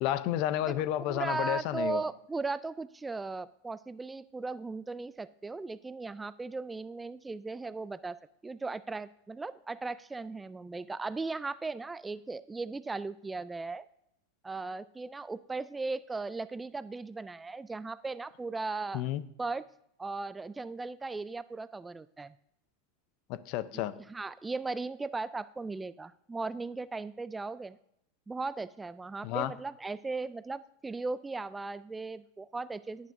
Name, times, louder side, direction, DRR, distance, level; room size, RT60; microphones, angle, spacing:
voice 1, 0.0-2.0 18.9-19.2 23.3-23.9 29.2-29.5, left 13 dB, 50° left, 17 dB, 0.6 m, -31 dB
voice 2, 0.7-8.2 8.4-13.9 14.4-19.0 19.4-19.7 20.0-22.3 23.7-27.8 28.3-33.1, right 3 dB, 15° right, 16 dB, 0.3 m, -37 dB
17.5 x 9.4 x 2.6 m, 0.75 s
figure-of-eight pair, 90°, 0 cm